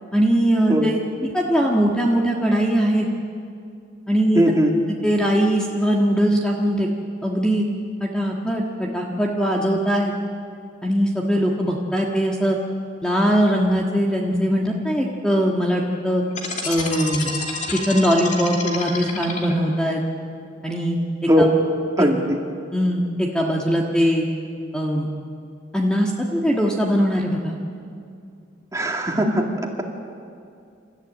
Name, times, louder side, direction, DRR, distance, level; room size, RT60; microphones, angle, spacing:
voice 1, 0.1-3.1 4.1-4.4 4.9-6.9 7.2-7.6 8.0-10.1 10.8-12.6 13.0-16.2 16.6-17.3 17.7-20.0 20.6-21.0 21.4-21.5 22.0-22.1 22.7-24.3 24.7-25.1 25.7-27.6, equal, 5° left, -2 dB, 1.5 m, -21 dB
voice 2, 4.4-4.7 21.3-21.5 22.0-22.4 28.7-29.4, equal, 15° right, 1 dB, 2.1 m, -19 dB
sound 1, 16.3-19.9, left 4 dB, 40° left, 2.7 m, -29 dB
29.5 x 14.0 x 9.0 m, 2.4 s
head